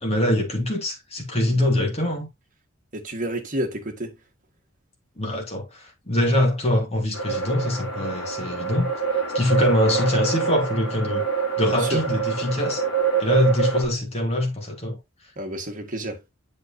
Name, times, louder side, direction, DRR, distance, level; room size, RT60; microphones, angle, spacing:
voice 1, 0.0-2.3 5.2-8.9 9.3-11.2 11.6-12.8 13.2-15.0, left 1 dB, 30° left, 2.6 m, -23 dB
voice 2, 2.9-4.1 11.7-12.0 15.4-16.2, right 1 dB, 40° right, 1.8 m, -30 dB
sound 1, 7.1-13.9, right 5 dB, 65° left, 4.5 m, -26 dB
8.1 x 6.5 x 2.9 m
head